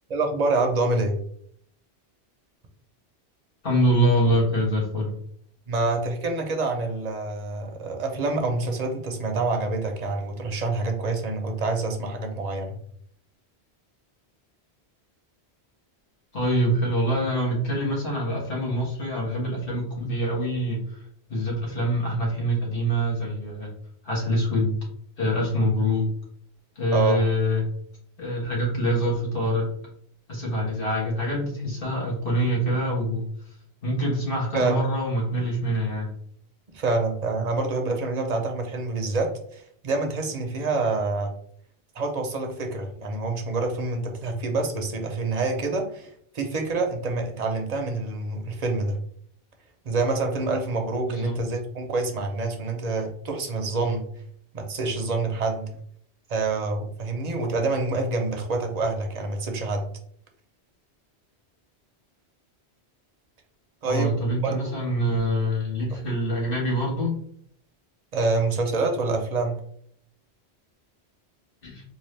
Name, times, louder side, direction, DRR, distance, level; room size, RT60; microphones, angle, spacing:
voice 1, 0.1-1.2 5.7-12.8 26.9-27.2 34.5-34.8 36.7-41.3 41.9-49.0 49.8-54.1 54.5-55.7 56.3-59.8 63.8-64.7 65.9-66.0 68.1-69.6, right 3 dB, 45° right, 3 dB, 0.7 m, -27 dB
voice 2, 3.6-5.1 16.3-21.0 21.3-23.7 24.0-24.8 25.2-26.0 26.7-27.6 28.2-29.6 30.3-33.3 33.8-36.1 51.1-51.4 63.8-67.1 71.6-71.8, equal, 55° left, -5 dB, 1.7 m, -25 dB
3.8 x 2.5 x 3.2 m, 0.65 s
omnidirectional pair, 1.1 m